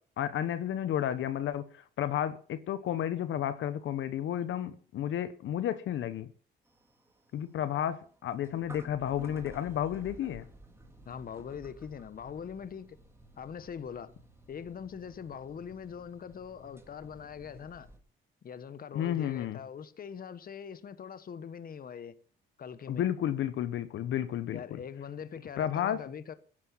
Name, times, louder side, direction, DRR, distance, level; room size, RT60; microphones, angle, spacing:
voice 1, 0.2-6.3 7.3-10.5 18.9-19.6 22.9-24.8 25.6-26.0, left 10 dB, 75° left, 1.1 m, -32 dB
sound 1, 6.7-18.0, right 1 dB, 15° right, 3.2 m, -54 dB
voice 2, 11.0-13.0 13.4-14.1 14.5-17.9 18.4-22.2 22.6-23.0 24.5-26.3, left 7 dB, 45° left, 1.2 m, -42 dB
15.0 x 11.0 x 5.7 m
cardioid pair, 90°, 20 cm